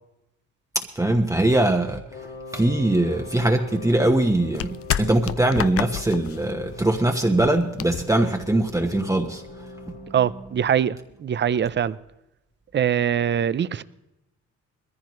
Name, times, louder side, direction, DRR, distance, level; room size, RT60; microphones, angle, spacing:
voice 1, 0.7-2.0 2.5-10.1, right 1 dB, 10° right, 2 dB, 1.1 m, -22 dB
Wind instrument woodwind instrument, 2.1-10.2, left 3 dB, 75° left, 3.2 m, -42 dB
sound 1, 3.1-9.0, left 11 dB, 50° left, 0.5 m, -32 dB
voice 2, 10.1-12.0 12.7-13.8, right 9 dB, 35° right, 16 dB, 0.6 m, -23 dB
20.5 x 14.5 x 3.2 m, 0.90 s
cardioid pair, 90°, 30 cm